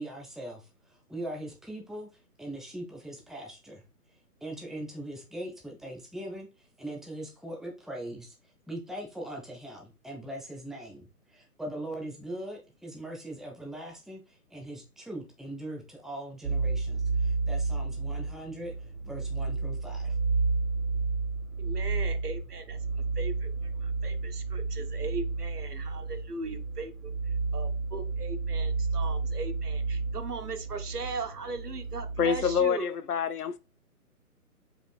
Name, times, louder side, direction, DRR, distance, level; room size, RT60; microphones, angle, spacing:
voice 1, 0.0-3.8 4.4-8.3 8.7-18.7 19.0-20.2, right 1 dB, ahead, 0.3 m, -41 dB
sound 1, 16.4-32.6, right 3 dB, 55° right, 0.6 m, -31 dB
voice 2, 21.6-22.8 23.2-27.1 27.5-32.9, right 4 dB, 80° right, 0.9 m, -38 dB
voice 3, 32.2-33.6, left 7 dB, 75° left, 0.6 m, -27 dB
4.8 x 2.7 x 3.2 m
figure-of-eight pair, 135°, 46 cm